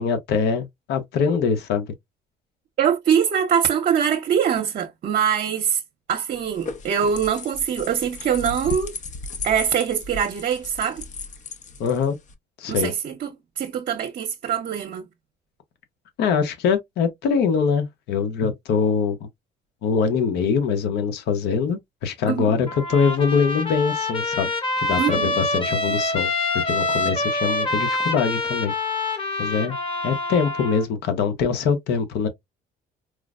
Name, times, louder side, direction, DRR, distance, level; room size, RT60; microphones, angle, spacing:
voice 1, 0.0-1.9 11.8-12.2 12.6-12.9 16.2-19.2 19.8-24.5 24.8-26.3 26.6-28.7 29.4-29.7 30.0-32.3, left 6 dB, 75° left, 0.8 m, -23 dB
voice 2, 2.8-5.8 6.1-9.0 9.4-11.0 12.7-15.1 22.2-22.5 25.0-25.3, right 8 dB, 55° right, 0.7 m, -23 dB
sound 1, 6.3-12.3, left 3 dB, 45° left, 0.7 m, -35 dB
Trumpet, 22.7-30.9, left 2 dB, 30° left, 1.1 m, -26 dB
4.7 x 2.0 x 2.3 m
cardioid pair, 110°, 17 cm